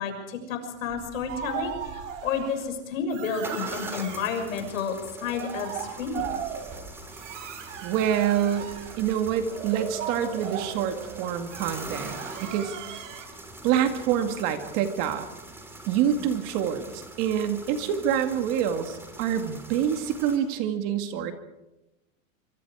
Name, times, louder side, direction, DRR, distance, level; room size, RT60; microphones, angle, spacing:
voice 1, 0.0-6.4, left 5 dB, 70° left, 5 dB, 6.4 m, -31 dB
sound 1, 0.9-2.8 3.4-20.4, right 1 dB, 5° right, 2.8 m, -43 dB
sound 2, 1.3-2.7 3.1-4.5 5.0-13.3, right 8 dB, 65° right, 4.1 m, -38 dB
voice 2, 7.8-8.7 9.0-12.7 13.6-15.3 15.9-21.3, right 9 dB, 35° right, 7 dB, 2.1 m, -26 dB
26.0 x 26.0 x 4.9 m, 0.97 s
supercardioid pair, 165°, 41 cm